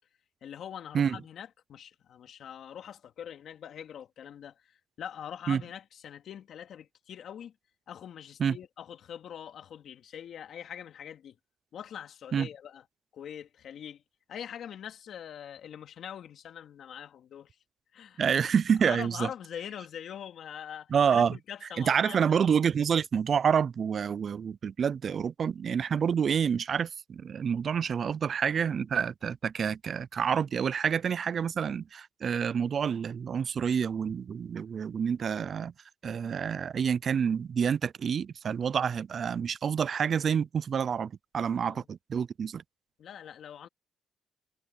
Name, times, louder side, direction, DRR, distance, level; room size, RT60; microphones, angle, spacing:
voice 1, 0.4-7.5 7.9-11.4 11.7-12.8 13.1-14.0 14.3-17.6 17.9-18.2 18.8-22.4 41.5-41.9 43.0-43.7, left 9 dB, 65° left, 2.9 m, -43 dB
voice 2, 18.2-19.3 20.9-21.4 21.8-35.7 36.0-42.6, right 7 dB, 50° right, 0.4 m, -28 dB
cardioid pair, 90°, 0 cm